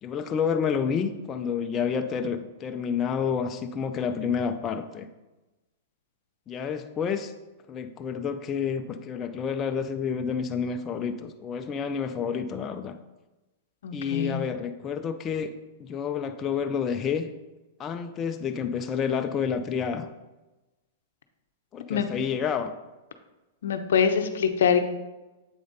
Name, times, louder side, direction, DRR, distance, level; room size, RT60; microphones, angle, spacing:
voice 1, 0.0-5.1 6.5-7.3 7.7-13.0 13.9-15.5 15.8-17.3 17.8-20.1 21.7-22.7, left 6 dB, 25° left, 6 dB, 0.5 m, -29 dB
voice 2, 13.8-14.4 21.9-22.0 23.6-24.8, left 7 dB, 80° left, 8 dB, 0.7 m, -24 dB
7.8 x 5.0 x 4.0 m, 1.1 s
hypercardioid pair, 120°, 0 cm